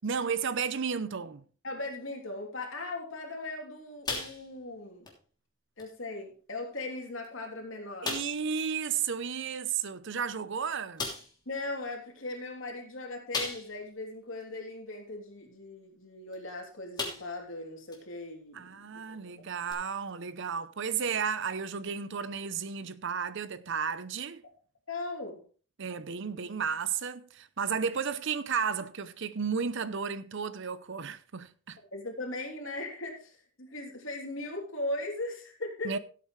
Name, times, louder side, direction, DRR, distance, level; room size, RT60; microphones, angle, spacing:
voice 1, 0.0-1.4 8.0-11.1 18.5-24.4 25.8-31.8 35.8-36.0, right 6 dB, 60° right, 0.7 m, -33 dB
voice 2, 1.6-5.1 5.8-8.1 11.4-19.2 24.9-25.4 31.8-36.0, left 2 dB, 65° left, 3.3 m, -39 dB
sound 1, 4.0-4.7 5.0-5.2 5.8-5.9 6.7-6.8 7.2-7.3 8.0-8.5 10.1-10.2 11.0-11.4 13.3-13.9 14.4-14.5 16.3-16.5 17.0-17.5 17.9-18.0 19.7-19.8, left 3 dB, 20° left, 3.0 m, -36 dB
16.0 x 8.5 x 3.3 m
head